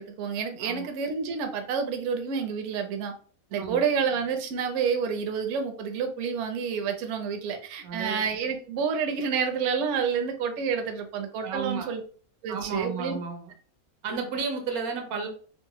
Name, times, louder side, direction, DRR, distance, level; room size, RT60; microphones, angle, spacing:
voice 1, 0.0-3.1 3.5-12.0 12.4-13.2, right 6 dB, 65° right, 5 dB, 0.8 m, -29 dB
voice 2, 0.6-0.9 3.6-3.8 7.8-8.3 11.4-11.9 12.5-13.5 14.0-15.3, right 5 dB, 85° right, 5 dB, 1.2 m, -33 dB
3.7 x 2.1 x 2.9 m, 0.42 s
omnidirectional pair, 1.5 m